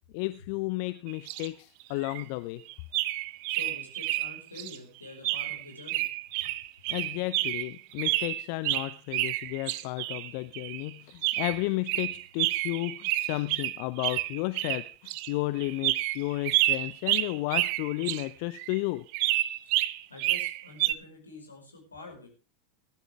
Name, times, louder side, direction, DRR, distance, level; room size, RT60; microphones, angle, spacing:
voice 1, 0.1-2.6 6.9-19.0, left 20 dB, 50° left, 14 dB, 0.7 m, -33 dB
sound 1, 1.1-1.5 1.8-2.2 2.7-4.8 5.2-10.9 11.2-18.3 18.6-18.8 19.1-20.9, right 17 dB, 50° right, 0.6 m, -29 dB
voice 2, 3.5-6.1 6.4-6.5 6.9-7.0 20.1-22.3, left 3 dB, 80° left, 1 dB, 5.2 m, -47 dB
19.0 x 12.0 x 3.5 m, 0.34 s
figure-of-eight pair, 85°, 0 cm